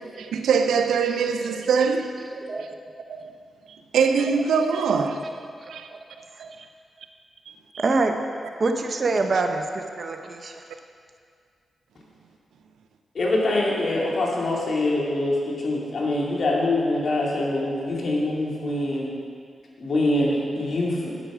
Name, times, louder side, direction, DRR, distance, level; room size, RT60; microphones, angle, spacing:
voice 1, 0.0-2.1 2.6-2.7 3.1-3.4 3.7-5.3 5.7-5.9 6.4-6.5 7.5-7.8 9.3-9.4, right 6 dB, 85° right, 0.7 m, -23 dB
voice 2, 7.8-8.3 8.6-10.6, right 3 dB, 55° right, 1.1 m, -25 dB
voice 3, 13.1-19.1 19.8-21.1, left 2 dB, 65° left, 2.5 m, -24 dB
8.8 x 8.7 x 6.2 m
supercardioid pair, 45°, 0 cm